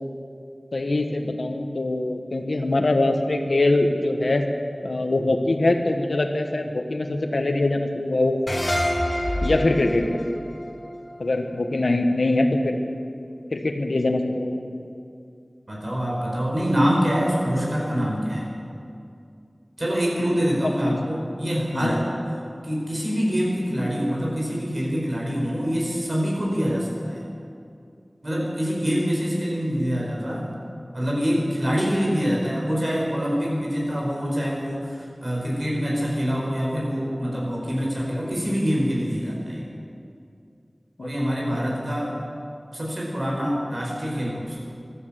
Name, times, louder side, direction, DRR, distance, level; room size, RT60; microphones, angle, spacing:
voice 1, 0.7-4.4 4.8-8.4 9.4-10.2 11.2-12.8 13.5-14.6 20.8-21.0 21.7-21.9 41.0-41.1 41.5-41.6, left 2 dB, 90° left, 5 dB, 1.2 m, -23 dB
sound 1, 8.5-11.8, equal, 40° left, 2.5 m, -27 dB
voice 2, 15.7-18.5 19.8-22.1 22.6-27.2 28.2-30.6 30.9-39.7 41.0-42.2 42.7-44.6, equal, 50° right, -3 dB, 5.1 m, -25 dB
15.0 x 12.5 x 7.5 m, 2.5 s
wide cardioid pair, 40°, 0 cm